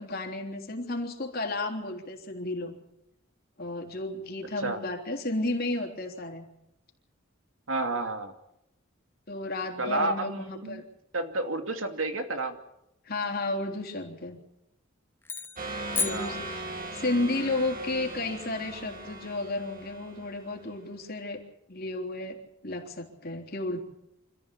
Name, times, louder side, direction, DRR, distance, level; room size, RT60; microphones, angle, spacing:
voice 1, 0.0-2.8 3.6-6.5 9.3-10.8 13.1-14.4 15.9-21.4 21.7-23.8, left 2 dB, 50° left, 3 dB, 3.5 m, -33 dB
voice 2, 7.7-8.3 9.8-10.8 11.1-12.6 16.0-16.4, right 2 dB, 85° right, 6 dB, 2.7 m, -30 dB
sound 1, 15.2-17.2, left 4 dB, 10° left, 0.8 m, -34 dB
sound 2, 15.6-21.0, right 2 dB, 45° right, 2.3 m, -39 dB
26.5 x 14.0 x 8.5 m, 0.84 s
head